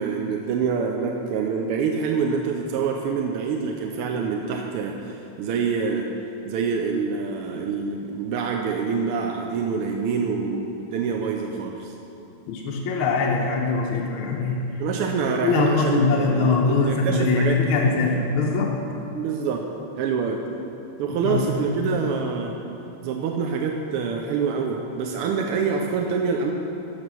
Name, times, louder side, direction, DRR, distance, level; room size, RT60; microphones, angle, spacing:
voice 1, 0.0-6.1 6.4-11.9 14.8-18.1 19.1-19.6 20.0-20.4 21.0-22.6 23.0-26.5, right 5 dB, 90° right, 2 dB, 1.6 m, -26 dB
voice 2, 12.5-14.8 15.4-18.8 21.2-21.7, left 4 dB, 75° left, -1 dB, 1.6 m, -22 dB
14.0 x 4.9 x 6.1 m, 2.8 s
omnidirectional pair, 2.4 m